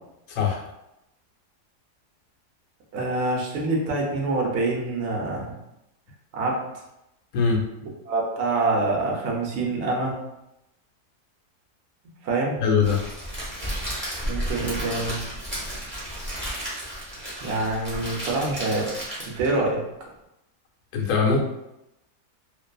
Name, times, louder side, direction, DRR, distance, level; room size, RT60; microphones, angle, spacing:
voice 1, 0.3-0.6 7.3-7.6 12.6-13.0 20.9-21.4, left 5 dB, 70° left, -1 dB, 1.0 m, -21 dB
voice 2, 2.9-5.5 6.3-6.7 7.8-10.2 12.2-12.6 14.2-15.2 17.4-19.8, right 2 dB, 60° right, -2 dB, 0.7 m, -26 dB
Crackle, 12.8-19.5, equal, 15° right, 0.4 m, -33 dB
2.5 x 2.4 x 2.2 m, 0.88 s
omnidirectional pair, 1.7 m